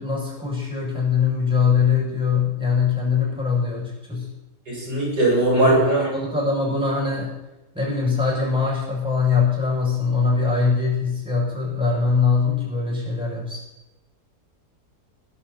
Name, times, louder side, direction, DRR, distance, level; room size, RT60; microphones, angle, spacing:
voice 1, 0.0-4.3 5.5-7.3 7.7-13.6, left 5 dB, 5° right, -3 dB, 7.0 m, -22 dB
voice 2, 4.7-6.1, right 1 dB, 85° right, -4 dB, 7.7 m, -19 dB
21.5 x 11.5 x 4.3 m, 0.99 s
omnidirectional pair, 1.7 m